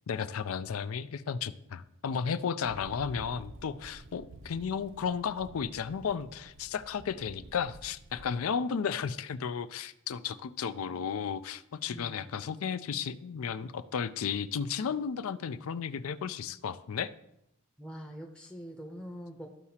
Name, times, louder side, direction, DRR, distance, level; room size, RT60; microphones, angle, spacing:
voice 1, 0.1-17.1, left 6 dB, 80° left, 14 dB, 0.4 m, -34 dB
sound 1, 2.6-8.3, right 2 dB, 65° right, 0.6 m, -50 dB
voice 2, 11.9-12.4 17.8-19.5, equal, 5° left, 0 dB, 0.6 m, -44 dB
13.5 x 4.8 x 2.8 m, 0.80 s
head